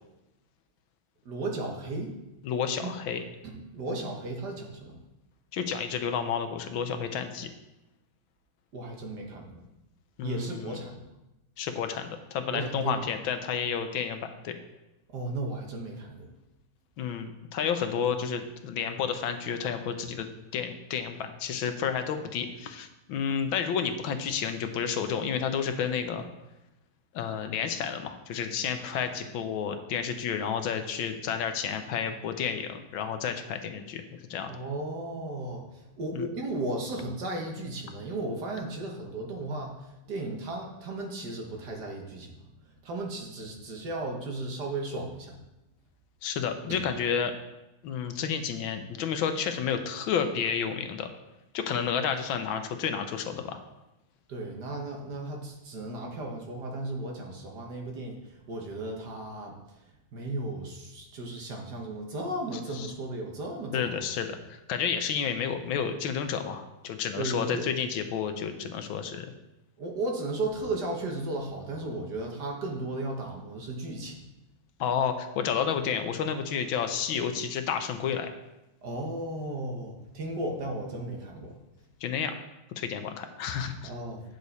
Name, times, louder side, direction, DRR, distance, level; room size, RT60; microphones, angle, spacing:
voice 1, 1.3-2.1 2.8-2.9 3.4-5.0 8.7-9.5 10.2-11.0 12.5-13.0 15.1-16.3 34.5-39.8 40.1-42.4 42.8-45.4 46.7-46.8 54.3-59.6 60.1-63.9 67.2-67.7 69.8-74.2 78.8-81.5 83.8-84.2, right 2 dB, 55° right, 1 dB, 1.6 m, -35 dB
voice 2, 2.4-3.2 5.5-7.5 10.2-10.8 11.6-14.6 17.0-20.3 20.5-26.2 27.1-34.5 36.1-36.2 46.2-47.3 47.8-51.1 51.5-53.6 62.7-62.9 63.7-69.3 74.8-78.3 82.0-82.3 82.8-83.9, left 7 dB, 75° left, 7 dB, 1.4 m, -31 dB
9.2 x 6.5 x 4.1 m, 0.95 s
omnidirectional pair, 2.3 m